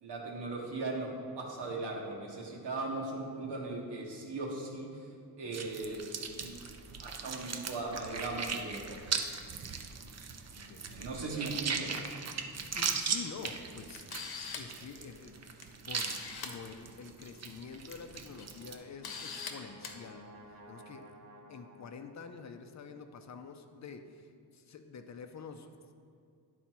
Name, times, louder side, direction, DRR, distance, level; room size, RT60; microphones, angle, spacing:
voice 1, 0.0-5.1 5.4-6.6 7.0-9.1 10.9-12.1, right 2 dB, 80° right, -1 dB, 1.4 m, -38 dB
sound 1, 5.5-18.7, right 6 dB, 40° right, 0.5 m, -39 dB
voice 2, 10.5-11.3 12.5-14.2 14.5-15.4 15.8-20.3 20.7-21.1 21.5-25.9, left 5 dB, 45° left, 7 dB, 0.5 m, -47 dB
Camera, 13.4-13.5 13.9-14.8 15.6-15.7 16.0-16.5 17.7-17.9 18.4-18.5 19.0-19.5 19.8-20.0, left 6 dB, 65° left, 0.8 m, -41 dB
Brass instrument, 18.0-22.3, right 1 dB, 60° right, 1.0 m, -55 dB
10.0 x 4.1 x 4.4 m, 2.3 s
wide cardioid pair, 125°, 40 cm